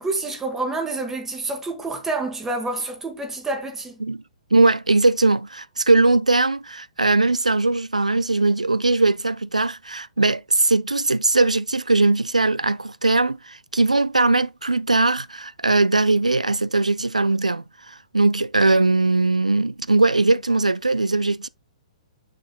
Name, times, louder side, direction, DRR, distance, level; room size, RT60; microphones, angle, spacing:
voice 1, 0.0-4.0, right 2 dB, 10° right, 1.4 m, -28 dB
voice 2, 4.5-21.5, right 2 dB, 85° right, 0.3 m, -20 dB
6.8 x 6.6 x 2.3 m
figure-of-eight pair, 120°, 4 cm